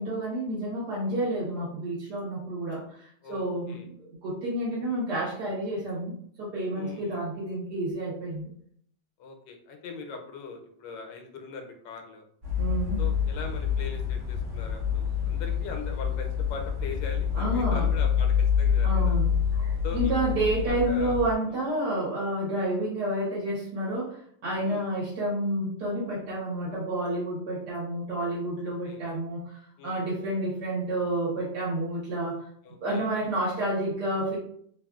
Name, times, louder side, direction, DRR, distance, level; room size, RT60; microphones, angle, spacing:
voice 1, 0.0-3.9 4.2-6.1 6.4-8.5 12.6-13.0 17.3-17.8 18.8-19.3 19.6-32.4 32.8-34.4, right 1 dB, 70° right, -6 dB, 1.5 m, -30 dB
voice 2, 3.2-3.9 6.7-7.2 9.2-12.2 13.0-19.2 19.8-20.1 20.6-21.2 24.6-24.9 28.9-29.0 29.8-30.0 32.6-33.1, left 4 dB, 85° left, 3 dB, 1.2 m, -41 dB
sound 1, 12.4-21.3, left 7 dB, 45° right, 1.3 m, -27 dB
3.3 x 2.4 x 2.3 m, 0.65 s
omnidirectional pair, 1.9 m